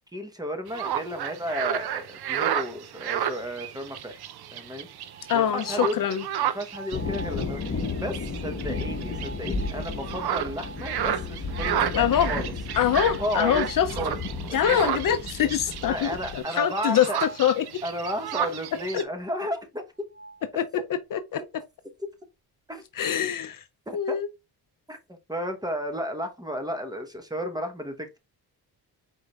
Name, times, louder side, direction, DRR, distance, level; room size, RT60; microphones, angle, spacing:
voice 1, 0.1-4.2 4.5-4.9 5.3-6.0 6.4-12.5 13.2-13.6 14.0-14.2 14.5-14.9 15.8-17.2 17.8-19.8 20.7-20.8 22.7-22.8 23.9-24.2 24.9-28.2, equal, 10° right, 1.0 m, -33 dB
sound 1, 0.7-19.0, right 10 dB, 70° right, 0.6 m, -32 dB
sound 2, 5.0-6.1 6.6-7.5 8.7-14.3 14.7-14.8 15.3-15.4 16.9-17.5 19.8-19.9 20.1-20.5, right 3 dB, 25° right, 1.6 m, -45 dB
voice 2, 5.3-6.2 11.9-12.3 12.8-13.9 14.5-17.8 18.9-19.0 20.6-20.7 20.9-21.4 23.0-23.6 23.9-24.3, left 9 dB, 55° left, 0.5 m, -24 dB
sound 3, 6.9-16.4, left 3 dB, 35° left, 1.1 m, -33 dB
4.8 x 4.4 x 2.3 m
cardioid pair, 110°, 40 cm